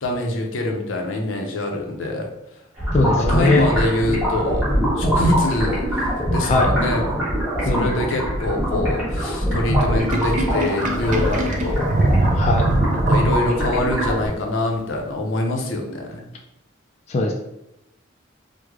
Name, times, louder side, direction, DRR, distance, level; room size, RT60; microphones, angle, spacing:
voice 1, 0.0-2.3 3.1-7.0 7.6-11.9 13.1-16.3, left 1 dB, 85° left, 1 dB, 0.6 m, -24 dB
sound 1, 2.8-14.3, equal, 5° right, 1.2 m, -23 dB
voice 2, 2.9-3.7 6.4-6.7 7.7-8.0 12.3-12.7 17.1-17.3, left 3 dB, 35° left, 1 dB, 0.3 m, -20 dB
Sink (filling or washing), 10.0-13.8, right 2 dB, 40° right, 0.4 m, -22 dB
3.1 x 2.2 x 3.5 m, 0.85 s
head